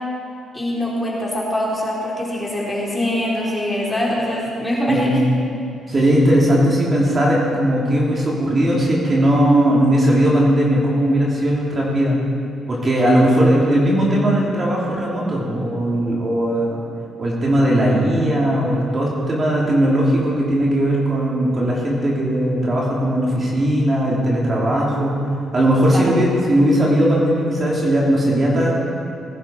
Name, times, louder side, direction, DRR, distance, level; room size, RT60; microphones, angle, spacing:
voice 1, 0.5-5.3 25.9-26.0, left 1 dB, 10° left, -5 dB, 4.0 m, -23 dB
voice 2, 5.9-12.2 12.7-16.8 17.2-25.2 25.5-28.7, right 1 dB, 35° right, -4 dB, 3.1 m, -18 dB
19.5 x 10.5 x 4.6 m, 2.5 s
cardioid pair, 90°, 0 cm